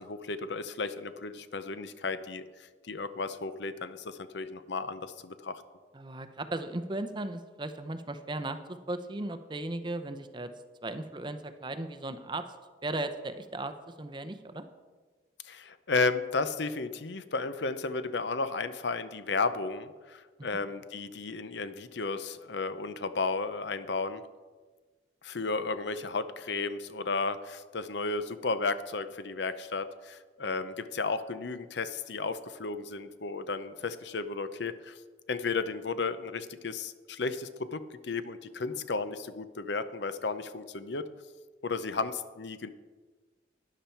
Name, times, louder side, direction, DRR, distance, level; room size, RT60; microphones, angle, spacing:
voice 1, 0.0-2.4 2.9-5.6 15.4-24.2 25.2-35.0 35.3-41.1 41.6-42.7, left 4 dB, 70° left, 12 dB, 0.7 m, -33 dB
voice 2, 5.9-10.5 10.8-12.5 12.8-14.7 20.4-20.5 38.7-38.9, right 2 dB, 25° right, 10 dB, 0.6 m, -36 dB
12.5 x 10.0 x 4.5 m, 1.4 s
head